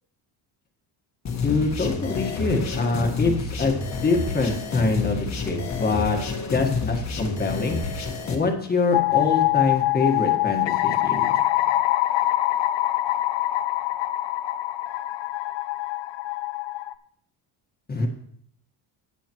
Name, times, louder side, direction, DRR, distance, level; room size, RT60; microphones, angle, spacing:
sound 1, 1.2-8.3, left 4 dB, 40° left, 1.5 m, -29 dB
voice 1, 1.4-6.2 6.5-7.8 8.3-11.4 17.9-18.1, left 3 dB, 20° left, 3 dB, 1.5 m, -25 dB
sound 2, 8.9-16.9, left 15 dB, 90° left, 0.7 m, -24 dB
17.0 x 6.9 x 3.0 m, 0.66 s
cardioid pair, 150°, 42 cm